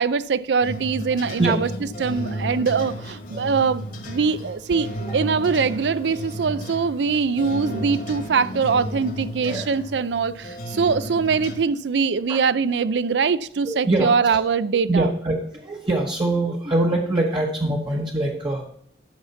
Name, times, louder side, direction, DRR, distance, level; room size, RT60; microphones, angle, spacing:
voice 1, 0.0-1.7 2.0-15.1, right 5 dB, 75° right, 0.5 m, -22 dB
sound 1, 0.6-11.6, equal, 55° left, 1.5 m, -33 dB
voice 2, 9.5-9.8 12.3-12.4 13.7-14.4 14.9-18.6, right 2 dB, 30° right, 1.1 m, -24 dB
9.4 x 5.8 x 5.8 m
head